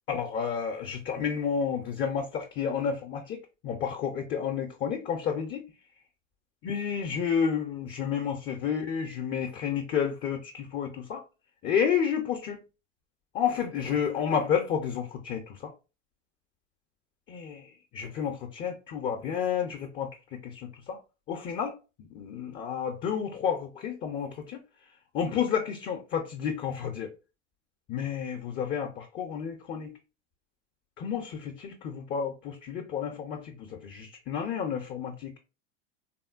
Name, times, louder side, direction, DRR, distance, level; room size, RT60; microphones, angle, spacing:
voice 1, 0.1-5.7 6.6-11.2 11.6-12.6 13.3-15.7 17.3-21.0 21.3-21.7 22.1-24.6 25.1-27.1 27.9-29.9 31.0-35.3, left 7 dB, 30° left, 0.5 m, -31 dB
3.6 x 2.1 x 2.4 m
supercardioid pair, 115°, 36 cm